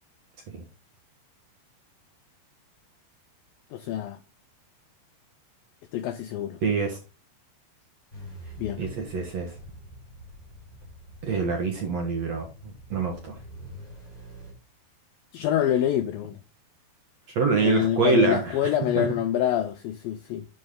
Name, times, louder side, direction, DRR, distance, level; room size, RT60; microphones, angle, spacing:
voice 1, 3.7-4.2 5.9-6.6 8.6-8.8 15.3-16.4 17.6-20.5, left 11 dB, 90° left, 2.0 m, -26 dB
voice 2, 6.6-7.0 8.8-9.6 11.2-12.5 12.9-13.4 17.3-19.1, right 4 dB, 55° right, 2.0 m, -25 dB
sound 1, 8.1-14.5, equal, 10° left, 5.6 m, -45 dB
11.0 x 6.2 x 3.9 m
omnidirectional pair, 5.0 m